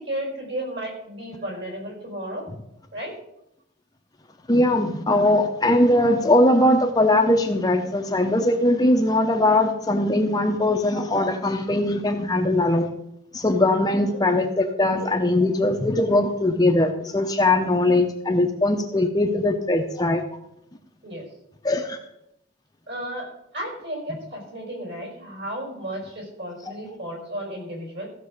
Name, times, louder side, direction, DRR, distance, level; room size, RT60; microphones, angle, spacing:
voice 1, 0.0-2.4 2.9-3.1 14.0-14.2 21.0-21.2 22.9-28.1, right 1 dB, 55° right, 0 dB, 5.2 m, -33 dB
voice 2, 4.5-12.9 13.3-20.2 21.6-22.0, left 1 dB, 20° left, 4 dB, 0.7 m, -20 dB
15.0 x 6.3 x 6.6 m, 0.82 s
head